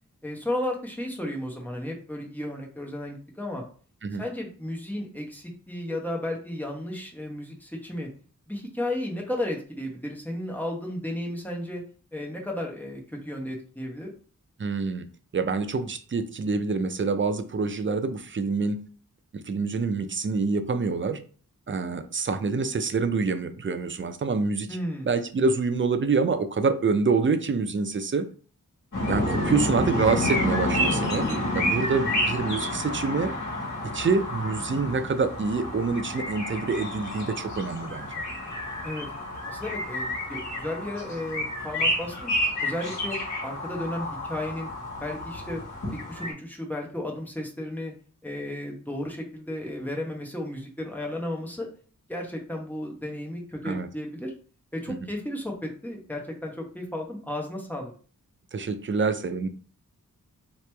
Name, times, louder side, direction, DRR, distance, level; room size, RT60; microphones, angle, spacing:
voice 1, 0.2-3.6 4.2-8.1 8.5-11.8 12.1-14.1 24.7-25.1 38.8-39.1 39.5-42.3 42.6-44.7 45.0-45.6 45.9-47.9 48.2-51.7 52.1-54.3 54.7-57.9, left 1 dB, 5° left, -1 dB, 1.0 m, -33 dB
voice 2, 14.6-15.1 15.3-18.8 19.3-21.2 21.7-24.7 25.1-28.3 29.1-31.3 31.5-33.3 33.9-38.2 53.6-53.9 54.9-55.0 58.5-59.5, right 4 dB, 35° right, 9 dB, 0.4 m, -26 dB
sound 1, 28.9-46.3, left 1 dB, 50° left, 1.7 m, -30 dB
3.1 x 2.9 x 3.3 m, 0.41 s
wide cardioid pair, 75°, 34 cm